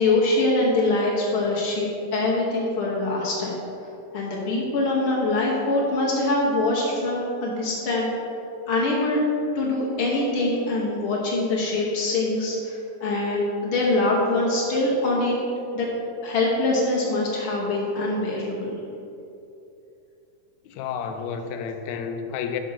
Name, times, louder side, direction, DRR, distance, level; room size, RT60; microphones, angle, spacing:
voice 1, 0.0-3.6 4.1-8.1 8.7-9.2 9.5-15.4 15.7-15.9 16.2-18.8, left 2 dB, 65° left, -4 dB, 1.3 m, -23 dB
voice 2, 20.7-22.6, left 7 dB, 80° left, 6 dB, 1.7 m, -31 dB
6.2 x 5.8 x 5.6 m, 2.8 s
omnidirectional pair, 3.7 m